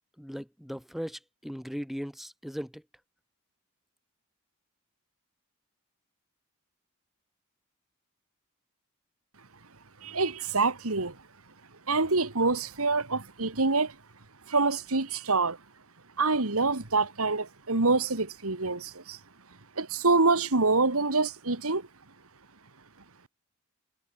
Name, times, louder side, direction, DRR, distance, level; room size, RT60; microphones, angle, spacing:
voice 1, 0.2-2.8, equal, ahead, 3.3 m, -38 dB
voice 2, 10.0-11.1 11.9-13.9 14.5-15.6 16.2-19.2 19.8-21.8, right 3 dB, 70° right, 2.2 m, -26 dB
head